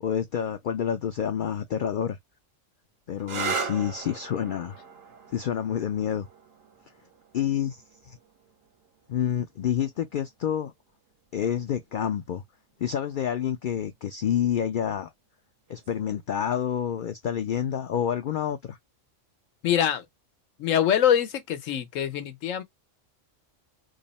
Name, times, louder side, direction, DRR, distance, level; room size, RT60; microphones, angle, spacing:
voice 1, 0.0-2.2 3.1-4.8 5.3-6.3 7.3-8.2 9.1-10.7 11.3-12.4 12.8-15.1 15.7-18.8, left 9 dB, 60° left, 0.5 m, -28 dB
sound 1, 3.2-10.6 11.6-12.2 15.7-16.0, right 5 dB, 80° right, 1.3 m, -38 dB
voice 2, 19.6-20.1 20.6-22.6, left 9 dB, 80° left, 1.2 m, -24 dB
3.7 x 2.1 x 4.0 m
omnidirectional pair, 1.3 m